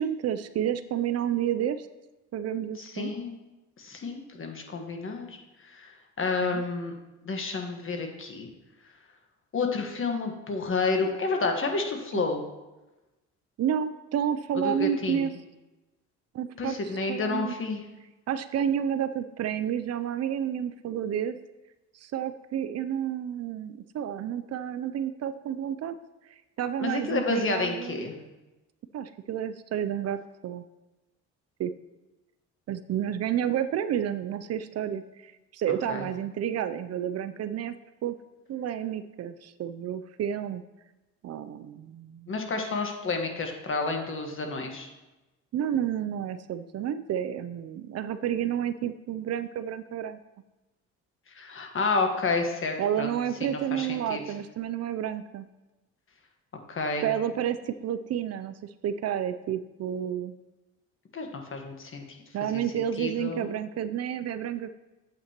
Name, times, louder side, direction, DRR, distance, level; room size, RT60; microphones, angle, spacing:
voice 1, 0.0-1.9 2.3-3.1 6.4-6.6 12.1-12.3 13.6-15.3 16.3-16.8 17.1-17.5 18.3-21.3 22.0-26.0 26.6-28.1 28.9-30.6 31.6-31.7 32.7-37.7 38.0-38.2 38.5-40.6 41.2-42.3 45.5-50.2 52.8-55.5 57.0-60.3 62.3-64.7, right 9 dB, 55° right, 12 dB, 0.5 m, -30 dB
voice 2, 2.8-3.4 3.8-5.3 5.6-6.9 7.2-8.5 9.5-12.4 14.5-15.3 16.6-17.8 26.8-28.1 35.9-36.0 42.3-44.9 51.3-53.1 53.4-54.2 56.7-57.1 61.1-62.2 62.5-63.5, left 3 dB, 45° left, 3 dB, 1.4 m, -30 dB
8.5 x 7.9 x 2.9 m, 1.1 s
cardioid pair, 90°, 30 cm